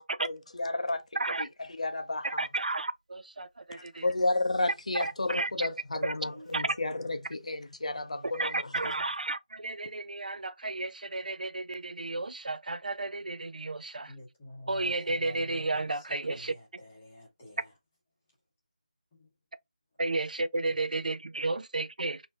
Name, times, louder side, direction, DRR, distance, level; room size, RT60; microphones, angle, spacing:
voice 1, 0.2-1.0 1.4-2.5 3.8-8.9, left 2 dB, 50° left, 0.5 m, -32 dB
Speech, 0.9-1.0 6.2-6.9 8.1-8.3, right 1 dB, 50° right, 0.8 m, -51 dB
voice 2, 1.2-1.5 2.2-4.0 4.9-5.7 6.0-6.1 6.5-6.7 8.3-14.1 14.7-16.5 20.0-22.2, right 2 dB, 70° right, 0.4 m, -32 dB
voice 3, 14.1-17.7 19.2-19.3 20.7-20.8, left 1 dB, 10° left, 0.8 m, -48 dB
3.9 x 2.6 x 2.3 m
figure-of-eight pair, 180°, 4 cm